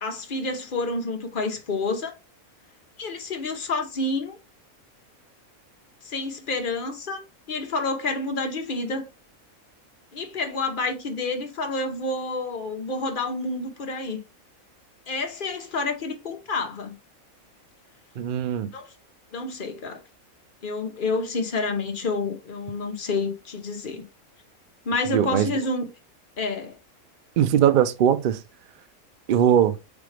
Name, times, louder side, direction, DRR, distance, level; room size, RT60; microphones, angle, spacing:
voice 1, 0.0-2.1 3.0-4.4 6.0-7.2 7.5-9.1 10.1-14.2 15.1-17.0 18.7-18.9 19.3-20.0 20.6-24.1 24.8-25.9 26.4-26.8, left 3 dB, 45° left, 0.9 m, -29 dB
voice 2, 18.2-18.7 25.1-25.5 27.4-28.4 29.3-29.8, right 9 dB, 85° right, 0.4 m, -20 dB
3.7 x 3.6 x 3.2 m
omnidirectional pair, 1.5 m